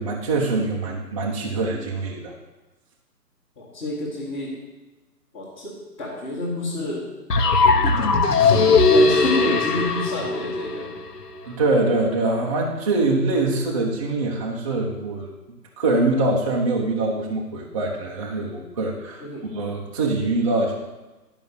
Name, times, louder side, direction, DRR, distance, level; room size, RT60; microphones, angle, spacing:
voice 1, 0.0-2.3 11.4-15.3 15.8-19.3 19.5-20.7, right 2 dB, 20° right, -3 dB, 0.8 m, -23 dB
voice 2, 3.6-4.5 5.3-7.1 8.4-10.9 19.2-19.5, left 2 dB, 10° left, -10 dB, 1.4 m, -28 dB
sound 1, 7.3-11.3, left 3 dB, 70° left, 1.3 m, -19 dB
11.5 x 5.4 x 7.0 m, 1.1 s
figure-of-eight pair, 150°, 50 cm